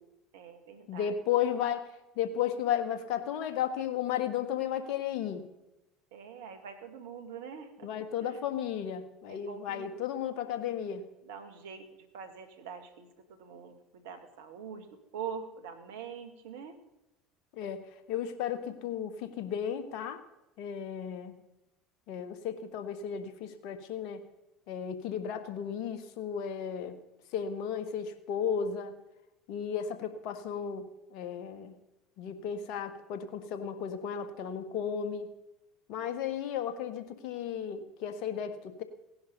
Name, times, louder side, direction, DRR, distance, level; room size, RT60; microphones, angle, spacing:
voice 1, 0.3-1.2 6.1-8.4 9.3-9.9 11.2-11.9 12.1-14.9 15.1-16.8, right 7 dB, 75° right, 8 dB, 1.9 m, -44 dB
voice 2, 0.9-1.9 2.1-5.5 7.8-11.1 17.5-17.8 18.1-20.2 20.6-21.3 22.1-24.3 24.7-27.0 27.3-28.9 29.5-31.8 32.2-35.3 35.9-38.8, left 8 dB, 60° left, 9 dB, 1.6 m, -34 dB
17.5 x 11.0 x 5.4 m, 0.94 s
hypercardioid pair, 70°, 0 cm